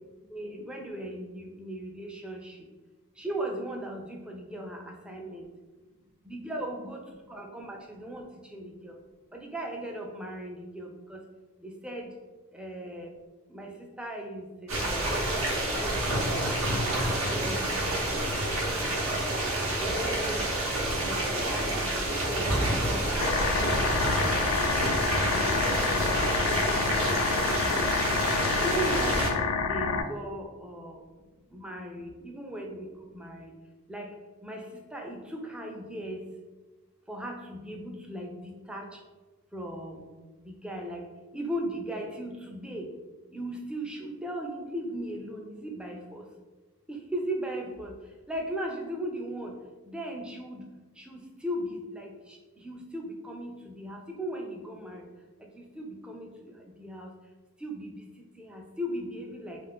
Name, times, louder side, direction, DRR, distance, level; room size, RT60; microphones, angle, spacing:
voice 1, 0.3-2.6 3.2-5.5 6.2-7.0 7.3-9.0 9.3-11.2 11.6-12.1 12.5-13.1 13.5-15.4 15.7-18.2 18.6-19.0 19.3-19.5 19.8-20.5 21.0-22.5 22.9-23.3 23.6-24.8 25.2-26.2 26.6-27.1 27.4-28.1 28.4-29.3 29.7-31.0 31.5-33.5 33.9-34.1 34.4-34.7 34.9-36.2 37.1-39.0 39.5-40.1 40.4-41.0 41.3-42.9 43.3-46.2 46.9-47.9 48.3-49.5 49.9-50.6 51.0-55.1 55.6-57.1 57.6-57.9 58.4-59.6, right 1 dB, 5° right, 1 dB, 0.3 m, -38 dB
sound 1, 14.7-29.3, right 1 dB, 80° right, 0.7 m, -28 dB
sound 2, 23.2-30.0, left 5 dB, 80° left, 0.3 m, -28 dB
2.4 x 2.3 x 3.5 m, 1.3 s
head